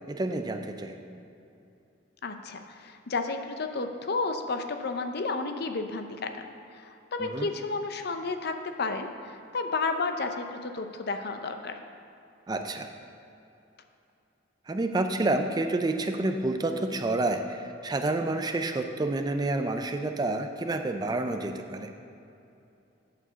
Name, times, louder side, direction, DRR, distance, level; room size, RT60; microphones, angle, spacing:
voice 1, 0.1-1.0 7.2-7.5 12.5-12.9 14.7-21.9, right 2 dB, 20° right, 6 dB, 0.4 m, -29 dB
voice 2, 2.2-6.5 6.7-11.8, left 3 dB, 55° left, 7 dB, 0.6 m, -32 dB
8.7 x 4.7 x 6.8 m, 2.7 s
head